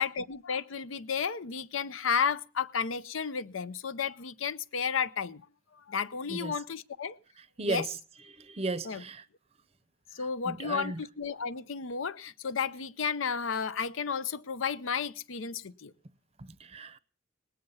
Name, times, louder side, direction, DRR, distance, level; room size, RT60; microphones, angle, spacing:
voice 1, 0.0-5.4 5.9-7.2 7.6-7.9 8.8-9.0 10.1-15.9, left 6 dB, 85° left, 0.6 m, -32 dB
voice 2, 7.6-8.0 8.4-9.2 10.4-11.0 16.4-17.0, right 2 dB, 30° right, 0.6 m, -35 dB
19.0 x 9.2 x 5.5 m
head